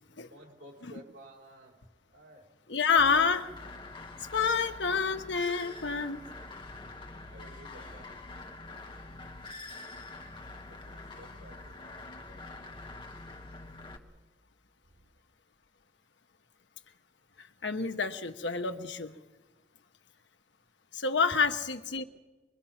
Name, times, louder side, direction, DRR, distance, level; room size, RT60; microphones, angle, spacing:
voice 1, 0.3-1.8 2.1-2.5 6.9-8.5 10.7-12.8 14.9-15.0, right 1 dB, 85° right, 4.8 m, -54 dB
voice 2, 2.7-3.5 4.3-6.2 17.4-19.1 20.9-22.0, left 5 dB, 85° left, 1.2 m, -28 dB
sound 1, 3.0-14.0, left 2 dB, 25° left, 1.5 m, -45 dB
24.5 x 23.0 x 5.9 m
head